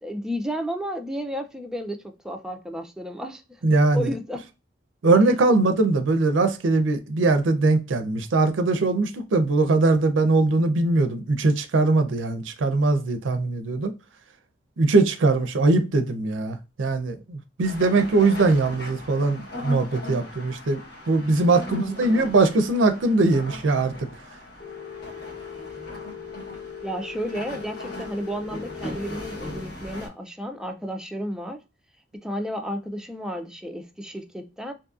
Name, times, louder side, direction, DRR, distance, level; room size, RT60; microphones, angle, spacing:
voice 1, 0.0-3.6 3.9-4.4 5.2-5.3 21.6-22.3 26.8-31.6 32.2-34.7, equal, 5° right, 0.3 m, -32 dB
voice 2, 3.6-4.1 5.0-13.9 14.8-20.8 21.1-23.9, right 3 dB, 80° right, 0.5 m, -21 dB
sound 1, 17.6-30.1, left 1 dB, 55° left, 1.1 m, -39 dB
Telephone, 24.6-29.6, left 7 dB, 30° left, 1.2 m, -40 dB
2.6 x 2.5 x 2.4 m
head